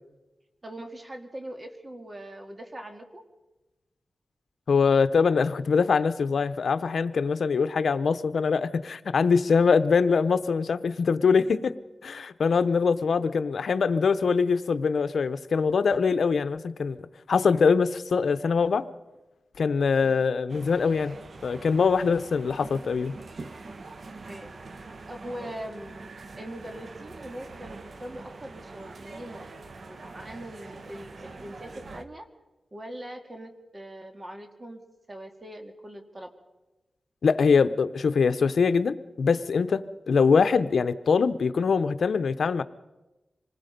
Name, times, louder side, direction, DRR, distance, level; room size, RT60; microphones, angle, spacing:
voice 1, 0.6-3.2 20.0-20.2 24.3-24.5 25.1-26.0 26.3-29.5 29.9-32.3 32.7-34.8 35.1-36.3, right 1 dB, 30° right, 5 dB, 2.2 m, -41 dB
voice 2, 4.7-11.7 12.0-17.0 17.3-18.9 19.6-21.1 21.4-23.1 37.2-42.6, left 5 dB, 80° left, 13 dB, 0.8 m, -23 dB
sound 1, 20.5-32.0, right 3 dB, 60° right, 1.2 m, -44 dB
26.5 x 20.0 x 5.3 m, 1.1 s
wide cardioid pair, 90°, 0 cm